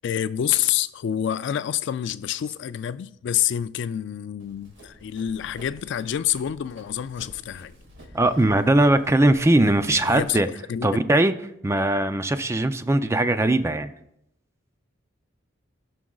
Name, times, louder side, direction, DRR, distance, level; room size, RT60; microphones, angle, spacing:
voice 1, 0.0-7.7 9.9-10.4 10.7-11.0, left 10 dB, 65° left, 0.3 m, -27 dB
Run, 4.4-10.4, equal, 75° right, 2.2 m, -49 dB
voice 2, 8.1-10.5 10.8-11.3 11.6-13.9, right 1 dB, 15° right, 0.4 m, -20 dB
18.5 x 6.2 x 2.3 m
head